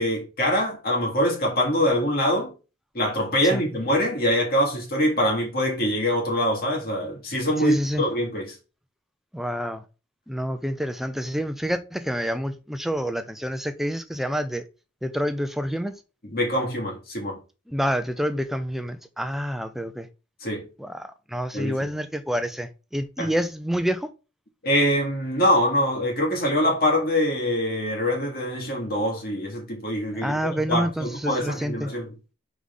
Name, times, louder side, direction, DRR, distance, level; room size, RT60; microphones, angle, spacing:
voice 1, 0.0-2.5 2.9-8.6 16.2-17.4 20.4-20.7 21.5-21.9 23.2-23.3 24.6-32.1, equal, 50° left, 2.5 m, -24 dB
voice 2, 7.6-8.0 9.3-9.8 10.3-14.6 15.0-15.9 17.7-20.1 20.8-24.1 30.2-31.9, equal, ahead, 0.5 m, -28 dB
4.9 x 3.9 x 5.4 m
head